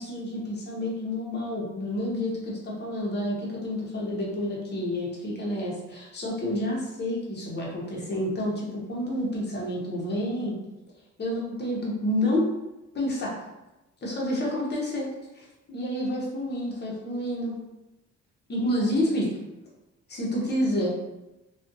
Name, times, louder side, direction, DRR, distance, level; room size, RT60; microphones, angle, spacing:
voice 1, 0.0-10.5 11.2-12.5 12.9-13.3 14.0-15.1 15.3-17.6 18.5-19.3 20.1-20.9, left 1 dB, 35° left, -4 dB, 0.9 m, -29 dB
2.4 x 2.4 x 2.6 m, 1.0 s
cardioid pair, 90°, 30 cm